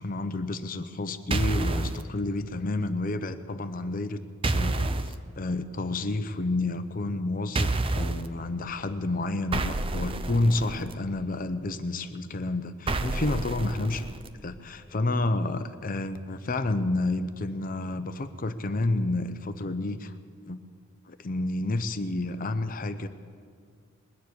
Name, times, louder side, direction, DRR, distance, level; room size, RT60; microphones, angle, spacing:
voice 1, 0.0-4.2 4.5-14.1 14.4-20.1 20.5-20.6 21.1-23.1, left 2 dB, 45° left, 10 dB, 0.7 m, -30 dB
sound 1, 1.3-2.0 4.4-5.1 7.5-8.3 9.5-10.9 12.9-14.3, right 2 dB, 25° right, 0.5 m, -28 dB
21.0 x 7.1 x 9.7 m, 2.1 s
head